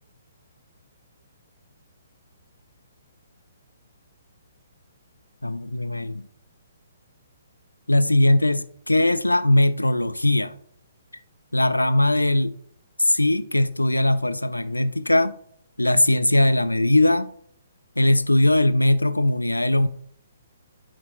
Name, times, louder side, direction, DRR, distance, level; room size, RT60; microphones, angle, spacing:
voice 1, 5.4-6.3 7.9-10.5 11.5-12.5 13.0-15.4 15.8-17.3 18.0-19.9, left 1 dB, 80° left, 0.4 m, -20 dB
8.7 x 7.3 x 2.3 m
figure-of-eight pair, 125°, 0 cm